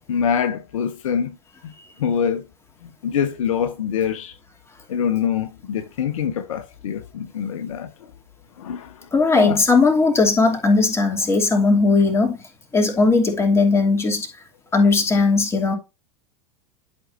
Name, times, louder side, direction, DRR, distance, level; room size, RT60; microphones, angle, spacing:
voice 1, 0.1-1.4 1.6-1.7 2.0-2.4 3.0-4.4 4.9-7.9 8.6-8.9 9.3-9.6, left 8 dB, 65° left, 0.7 m, -24 dB
voice 2, 9.1-12.4 12.7-14.3 14.7-15.7, left 3 dB, 15° left, 2.7 m, -18 dB
11.0 x 5.2 x 2.6 m
figure-of-eight pair, 90°, 18 cm